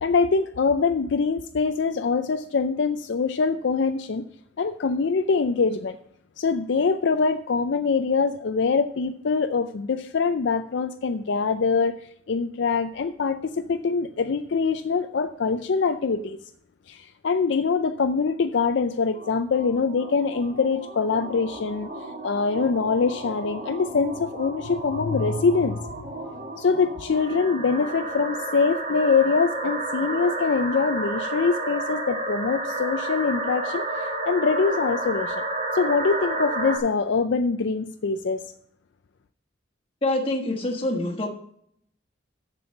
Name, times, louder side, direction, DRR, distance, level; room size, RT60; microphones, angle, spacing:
voice 1, 0.0-4.2 4.6-6.0 6.4-11.9 12.3-16.4 16.9-21.9 22.2-25.8 26.6-35.4 35.7-38.4, left 4 dB, 65° left, 9 dB, 0.4 m, -24 dB
sound 1, 19.1-36.8, right 2 dB, 40° right, 2.0 m, -31 dB
voice 2, 40.0-41.3, left 1 dB, 25° left, 0 dB, 1.4 m, -25 dB
7.0 x 6.9 x 6.9 m, 0.70 s
head